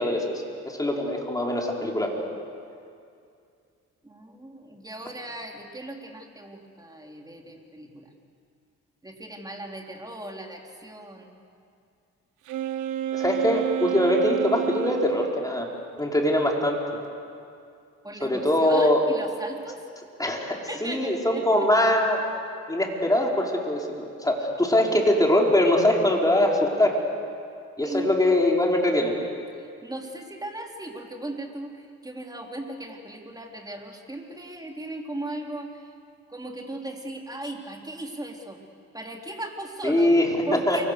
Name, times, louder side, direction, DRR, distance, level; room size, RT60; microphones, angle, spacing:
voice 1, 0.0-2.2 13.1-15.7 16.0-16.8 18.2-19.0 20.2-20.6 20.8-22.2 22.7-26.9 27.8-29.1 39.8-40.3 40.7-40.8, left 1 dB, 10° left, 0 dB, 4.4 m, -22 dB
voice 2, 4.0-8.1 9.0-11.3 18.0-19.8 20.7-21.7 27.8-28.1 29.6-35.7 36.3-38.6 38.9-40.1 40.5-40.8, right 1 dB, 15° right, 1 dB, 3.6 m, -37 dB
Wind instrument woodwind instrument, 12.5-15.4, right 12 dB, 85° right, 1.1 m, -29 dB
29.0 x 23.5 x 6.8 m, 2.4 s
cardioid pair, 90°, 30 cm